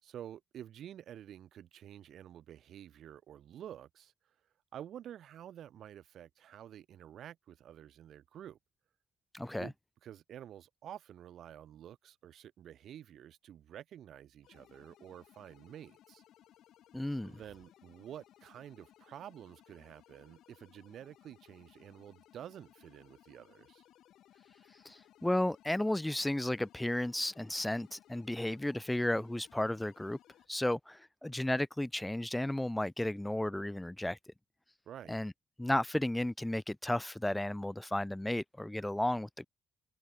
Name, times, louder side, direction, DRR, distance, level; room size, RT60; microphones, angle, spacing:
voice 1, 0.0-4.1 4.7-8.6 9.6-9.7 10.0-16.2 17.2-23.8 34.8-35.2, right 10 dB, 70° right, 6.6 m, -50 dB
voice 2, 9.3-9.7 16.9-17.4 24.8-30.2 30.5-34.2 35.1-35.3 35.6-39.5, left 1 dB, 10° left, 0.6 m, -33 dB
sound 1, 14.4-30.5, left 12 dB, 75° left, 4.0 m, -63 dB
cardioid pair, 90°, 0 cm